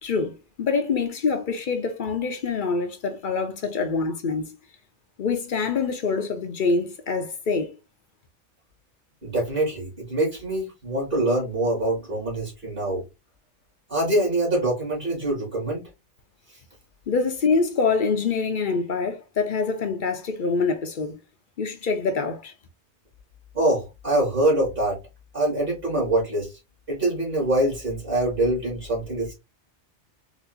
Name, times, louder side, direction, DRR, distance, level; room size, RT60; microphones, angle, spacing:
voice 1, 0.0-4.5 5.2-7.8 17.1-21.2 21.6-22.5, left 4 dB, 55° left, 0.7 m, -25 dB
voice 2, 9.2-13.0 13.9-15.9 23.5-25.0 25.3-26.5 26.9-29.3, right 1 dB, 50° right, 1.8 m, -24 dB
4.0 x 2.6 x 2.5 m
omnidirectional pair, 1.2 m